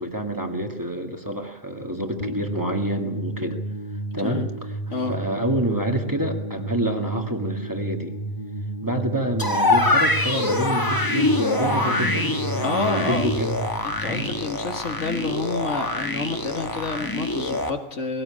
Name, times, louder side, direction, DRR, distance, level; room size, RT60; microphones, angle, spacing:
voice 1, 0.0-3.6 4.1-4.4 5.1-8.1 8.8-13.6 14.0-14.3, right 1 dB, 15° right, 3 dB, 2.1 m, -27 dB
sound 1, 2.2-15.3, right 2 dB, 35° left, 1.5 m, -32 dB
sound 2, 9.4-17.7, left 2 dB, 15° left, 1.7 m, -24 dB
voice 2, 12.6-13.3 13.8-18.2, left 3 dB, 75° left, 5 dB, 2.2 m, -29 dB
20.0 x 17.5 x 8.8 m, 0.90 s
omnidirectional pair, 1.3 m